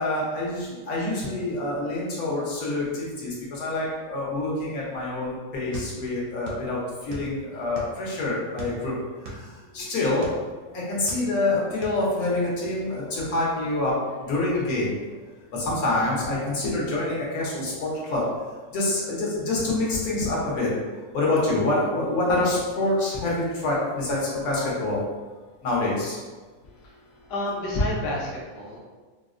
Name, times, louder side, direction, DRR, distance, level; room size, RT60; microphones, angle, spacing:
voice 1, 0.0-8.9 9.3-10.3 10.7-13.9 14.2-14.9 15.5-18.2 18.7-20.7 21.1-25.0 25.6-26.2, left 2 dB, 75° left, -5 dB, 1.3 m, -26 dB
sound 1, 5.7-6.7 6.9-8.1 8.5-10.4 10.9-11.5 11.8-12.0, equal, 75° right, 1.2 m, -38 dB
voice 2, 26.6-28.8, left 1 dB, 60° left, -6 dB, 1.0 m, -29 dB
4.3 x 2.0 x 2.4 m, 1.3 s
omnidirectional pair, 1.6 m